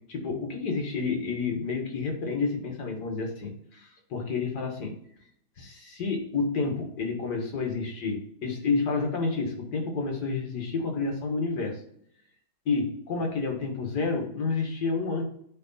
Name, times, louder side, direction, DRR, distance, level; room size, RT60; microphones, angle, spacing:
voice 1, 0.1-5.0 5.6-11.8 12.7-15.2, left 4 dB, 80° left, 2 dB, 2.1 m, -30 dB
9.6 x 3.5 x 4.0 m, 0.69 s
omnidirectional pair, 1.7 m